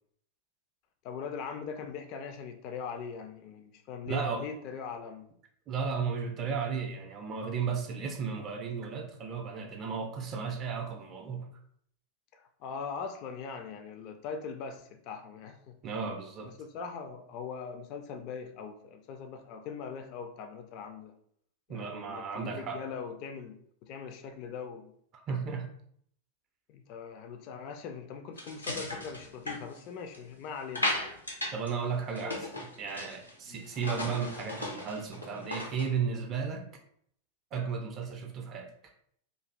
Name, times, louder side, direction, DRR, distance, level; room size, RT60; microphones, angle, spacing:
voice 1, 1.0-5.3 12.3-15.8 16.5-21.1 21.7-24.9 26.7-31.0 32.2-32.6 33.5-33.7, left 6 dB, 40° left, 6 dB, 0.4 m, -41 dB
voice 2, 4.1-4.4 5.7-11.5 15.8-16.5 21.7-22.8 25.3-25.7 31.5-36.6 37.5-38.7, right 6 dB, 35° right, 4 dB, 0.4 m, -34 dB
sound 1, 28.4-30.3 30.8-31.7 32.0-33.3 33.6-35.9, left 1 dB, 85° left, 0.6 m, -36 dB
2.5 x 2.3 x 3.1 m, 0.66 s
figure-of-eight pair, 90°, 0 cm